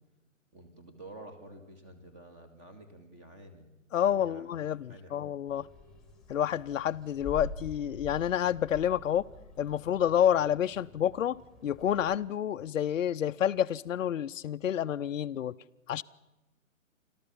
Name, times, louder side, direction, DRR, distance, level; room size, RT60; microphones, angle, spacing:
voice 1, 0.5-3.7 4.0-4.4 4.9-5.2, right 1 dB, 25° right, 2.2 m, -50 dB
voice 2, 3.9-5.7 6.3-9.3 9.6-15.5 15.9-16.0, left 10 dB, 70° left, 0.6 m, -29 dB
sound 1, 5.5-12.2, left 3 dB, ahead, 1.8 m, -47 dB
28.5 x 13.0 x 7.2 m
hypercardioid pair, 140°, 40 cm